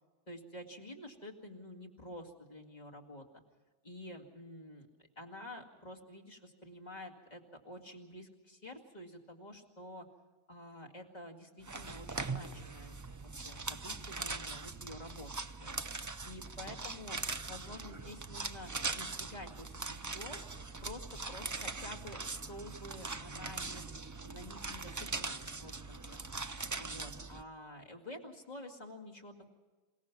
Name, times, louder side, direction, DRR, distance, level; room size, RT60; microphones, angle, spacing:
voice 1, 0.3-3.3 3.8-4.9 5.2-10.1 10.5-15.3 15.6-15.8 16.2-17.2 17.5-20.4 20.8-23.8 24.2-26.3 26.8-29.5, left 1 dB, 40° left, -1 dB, 2.4 m, -49 dB
sound 1, 11.6-27.4, right 3 dB, 25° right, 0.4 m, -41 dB
28.0 x 17.5 x 6.0 m, 1.3 s
omnidirectional pair, 1.2 m